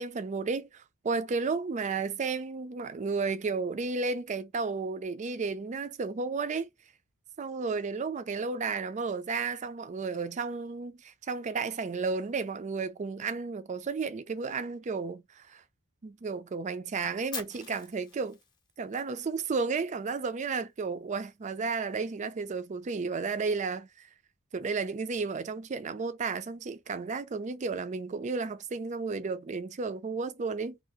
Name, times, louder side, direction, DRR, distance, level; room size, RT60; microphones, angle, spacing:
voice 1, 0.0-6.7 7.4-15.6 16.0-18.4 18.8-24.1 24.5-30.8, right 4 dB, 35° right, 0.4 m, -33 dB
Fire, 17.3-19.4, left 6 dB, 20° left, 0.6 m, -43 dB
2.7 x 2.4 x 3.6 m
head